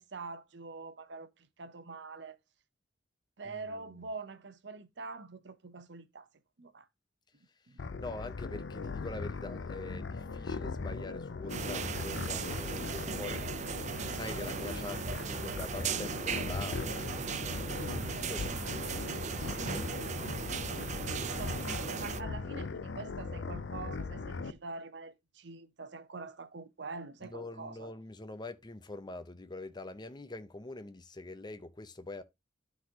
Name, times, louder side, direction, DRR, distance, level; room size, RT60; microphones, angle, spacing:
voice 1, 0.0-2.4 3.4-6.3 6.6-6.9 7.7-7.8 20.9-27.9, right 3 dB, 65° right, 0.8 m, -45 dB
voice 2, 3.4-3.9 8.0-13.4 14.0-19.0 19.5-19.8 27.2-32.2, left 2 dB, 25° left, 0.7 m, -44 dB
sound 1, 7.8-24.5, left 4 dB, 75° left, 0.5 m, -39 dB
sound 2, 11.5-22.2, right 6 dB, 40° right, 0.5 m, -37 dB
12.0 x 4.0 x 2.8 m
head